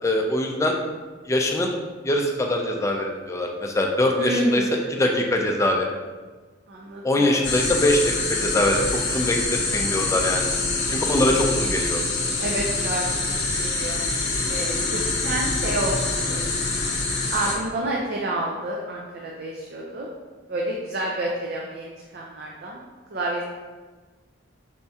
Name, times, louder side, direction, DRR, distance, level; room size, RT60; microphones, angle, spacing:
voice 1, 0.0-0.8 1.3-1.7 2.0-4.6 4.9-5.9 7.0-8.0 8.3-10.5 10.9-12.0, left 1 dB, 15° left, 1 dB, 0.4 m, -23 dB
voice 2, 4.2-4.8 6.7-7.4 12.4-14.0 14.5-16.4 17.3-20.1 20.5-22.8 23.1-23.4, right 1 dB, 55° right, -2 dB, 0.5 m, -29 dB
sound 1, 7.4-17.6, left 3 dB, 60° left, 0.7 m, -25 dB
4.2 x 3.5 x 2.8 m, 1.3 s
head